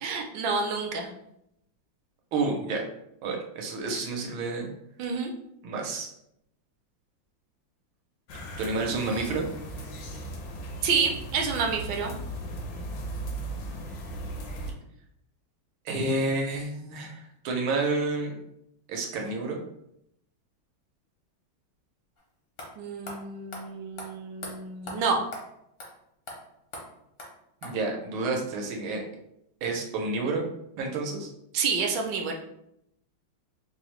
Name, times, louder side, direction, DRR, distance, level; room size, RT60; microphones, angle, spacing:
voice 1, 0.0-1.1 5.0-5.3 10.8-12.1 22.8-25.2 31.5-32.3, right 5 dB, 70° right, 2 dB, 1.1 m, -28 dB
voice 2, 2.3-2.9 3.2-4.7 5.6-6.1 8.6-9.5 15.8-18.4 18.9-19.6 27.6-29.0 29.6-30.4 30.8-31.3, right 3 dB, 90° right, 1 dB, 1.6 m, -29 dB
sound 1, 8.3-14.7, right 1 dB, 75° left, 1.2 m, -37 dB
sound 2, 22.2-22.3 22.6-22.7 23.0-23.2 23.5-23.6 24.0-24.1 24.4-24.5 24.9-25.0 25.3-25.4 25.8-25.9 26.3-26.4 26.7-26.8 27.2-27.3 27.6-27.7, left 1 dB, 55° left, 0.6 m, -39 dB
4.8 x 2.1 x 3.0 m, 0.78 s
omnidirectional pair, 2.2 m